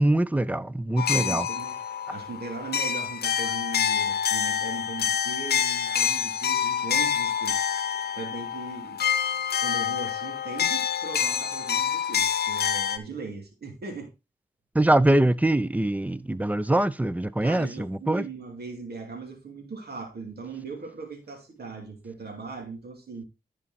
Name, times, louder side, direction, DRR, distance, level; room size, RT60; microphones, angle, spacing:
voice 1, 0.0-1.5 14.7-18.2, right 1 dB, 10° right, 0.6 m, -23 dB
sound 1, 1.0-13.0, left 8 dB, 85° left, 0.7 m, -27 dB
voice 2, 1.1-1.8 2.1-9.0 9.6-14.1 17.4-23.2, right 4 dB, 80° right, 2.6 m, -39 dB
11.0 x 5.2 x 4.2 m
cardioid pair, 65°, 16 cm